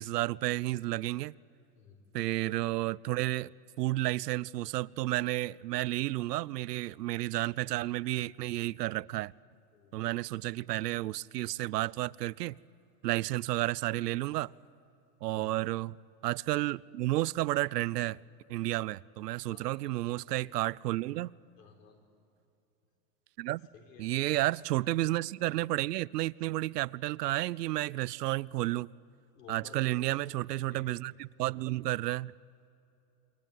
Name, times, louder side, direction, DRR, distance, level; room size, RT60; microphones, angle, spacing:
voice 1, 0.0-1.4 2.1-3.5 3.8-9.3 9.9-12.6 13.0-14.5 15.2-16.0 16.2-18.2 18.5-21.3 23.4-23.7 24.0-28.9 29.5-32.3, right 17 dB, 75° right, 0.6 m, -31 dB
voice 2, 19.4-19.9 20.3-20.6 21.6-22.0 23.5-24.5 29.3-30.4 30.7-31.0 31.5-31.7, left 5 dB, 75° left, 4.9 m, -55 dB
28.5 x 21.5 x 9.2 m
supercardioid pair, 175°, 48 cm